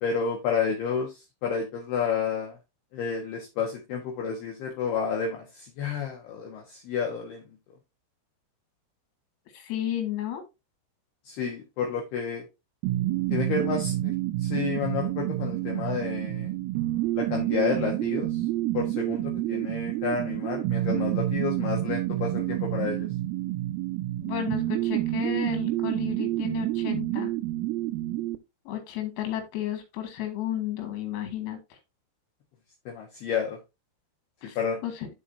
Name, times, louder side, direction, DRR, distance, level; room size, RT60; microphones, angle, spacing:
voice 1, 0.0-2.6 2.9-7.4 11.3-12.4 13.3-14.1 14.4-16.5 17.1-18.3 18.7-23.1 32.9-33.6 34.6-34.8, left 6 dB, 70° left, 2.6 m, -30 dB
voice 2, 9.5-10.4 24.2-27.3 28.7-31.8 34.4-35.1, left 11 dB, 85° left, 5.0 m, -33 dB
sound 1, 12.8-28.4, right 15 dB, 90° right, 3.3 m, -28 dB
13.0 x 4.8 x 2.7 m
omnidirectional pair, 6.0 m